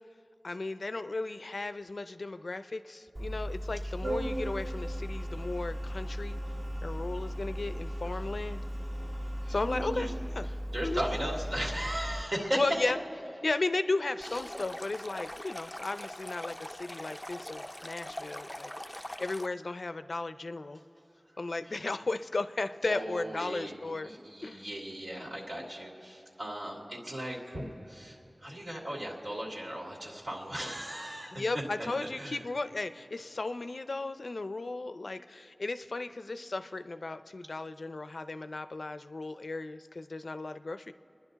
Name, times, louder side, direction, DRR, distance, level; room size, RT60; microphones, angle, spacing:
voice 1, 0.4-6.4 6.8-8.6 9.5-10.1 10.4-10.5 10.8-11.0 11.5-11.6 12.5-13.0 13.4-20.8 21.4-24.1 24.4-24.7 31.3-40.9, left 3 dB, 85° left, 11 dB, 0.5 m, -35 dB
Organ, 3.1-12.2, equal, 40° right, 1.6 m, -36 dB
voice 2, 10.7-12.6 14.3-14.4 21.7-21.8 22.9-23.7 24.0-31.4 31.8-31.9 32.2-32.4, equal, 75° right, -3 dB, 2.7 m, -37 dB
Stream, 14.2-19.5, left 1 dB, 15° left, 0.4 m, -42 dB
28.5 x 10.5 x 4.0 m, 3.0 s
wide cardioid pair, 45°, 0 cm